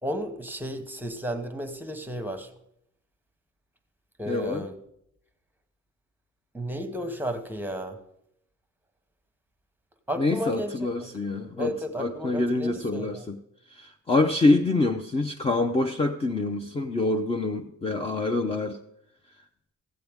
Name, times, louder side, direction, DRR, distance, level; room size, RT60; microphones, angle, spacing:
voice 1, 0.0-2.5 4.2-4.8 6.5-8.0 10.1-11.2 11.6-13.3, equal, 5° right, 7 dB, 1.0 m, -33 dB
voice 2, 4.3-4.6 10.2-13.4 13.7-18.8, left 2 dB, 20° left, 3 dB, 0.6 m, -26 dB
15.0 x 7.6 x 3.5 m, 0.77 s
cardioid pair, 90°, 30 cm